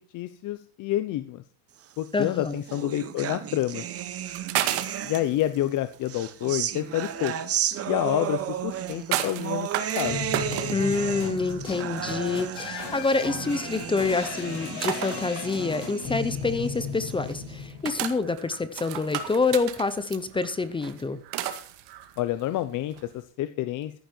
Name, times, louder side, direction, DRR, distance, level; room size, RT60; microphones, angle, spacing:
voice 1, 0.1-1.4 2.0-3.8 5.0-7.3 7.9-9.7 10.0-10.3 22.2-23.9, left 13 dB, 40° left, 11 dB, 0.9 m, -28 dB
voice 2, 2.1-2.6 10.7-21.2, left 3 dB, 10° left, 13 dB, 0.6 m, -27 dB
sound 1, 2.1-5.6 6.0-17.5, right 10 dB, 30° right, 1.0 m, -34 dB
sound 2, 4.0-23.2, right 12 dB, 60° right, 2.1 m, -35 dB
sound 3, 10.0-18.3, left 6 dB, 60° left, 6.3 m, -36 dB
15.0 x 10.5 x 4.5 m, 0.40 s
cardioid pair, 145°, 47 cm